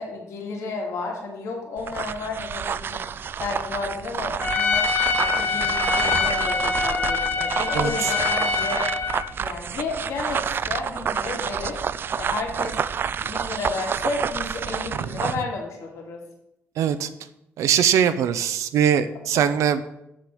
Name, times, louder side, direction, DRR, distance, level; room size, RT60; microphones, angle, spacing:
voice 1, 0.0-4.8 5.2-8.8 9.4-12.8 13.2-16.2 19.3-19.6, left 3 dB, 80° left, 0 dB, 2.4 m, -32 dB
sound 1, 1.8-15.4, right 7 dB, 45° right, 0.4 m, -29 dB
Trumpet, 4.4-9.3, left 5 dB, 35° left, 2.4 m, -24 dB
voice 2, 16.8-17.1 17.6-19.8, right 9 dB, 85° right, 12 dB, 0.7 m, -21 dB
7.5 x 7.0 x 6.2 m, 0.83 s
cardioid pair, 110°, 5 cm